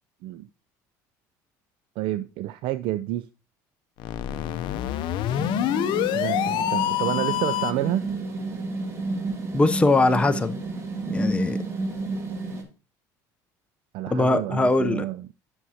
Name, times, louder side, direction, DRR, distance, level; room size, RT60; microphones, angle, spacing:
voice 1, 2.0-3.3 6.1-8.1 13.9-15.3, right 14 dB, 65° right, 0.4 m, -29 dB
sound 1, 4.0-7.9, left 12 dB, 60° left, 0.6 m, -26 dB
sound 2, 5.3-12.6, right 3 dB, 30° right, 2.7 m, -31 dB
voice 2, 9.5-10.6 11.1-11.6 14.1-15.1, left 2 dB, 15° left, 0.6 m, -21 dB
10.0 x 6.1 x 2.8 m
supercardioid pair, 90°, 9 cm